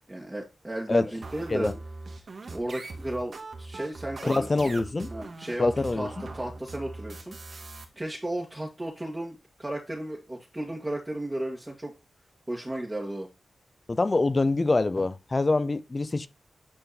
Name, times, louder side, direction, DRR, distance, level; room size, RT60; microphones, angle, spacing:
voice 1, 0.1-1.7 2.5-4.7 5.1-7.4 7.9-11.9 12.5-13.3, right 1 dB, 20° right, 2.0 m, -34 dB
sound 1, 1.2-7.8, right 3 dB, 60° right, 2.0 m, -41 dB
voice 2, 4.2-5.1 5.6-6.1 13.9-16.3, left 3 dB, 35° left, 0.7 m, -25 dB
9.9 x 4.5 x 4.2 m
wide cardioid pair, 95°, 0 cm